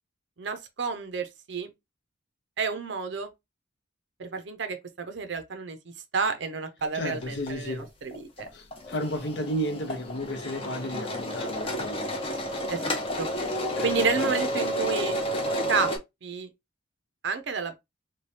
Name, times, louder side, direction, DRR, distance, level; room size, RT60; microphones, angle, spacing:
voice 1, 0.4-1.7 2.6-3.3 4.2-5.8 6.1-8.5 12.7-13.3 13.8-15.1 15.7-15.9 16.2-16.5 17.2-17.8, right 5 dB, 60° right, 0.6 m, -30 dB
voice 2, 6.9-7.9 8.5-12.1 13.7-14.3, equal, 55° left, 0.8 m, -33 dB
sound 1, 7.2-7.5 7.8-7.9 8.1-16.0, equal, 30° left, 0.8 m, -31 dB
3.2 x 2.3 x 4.1 m
head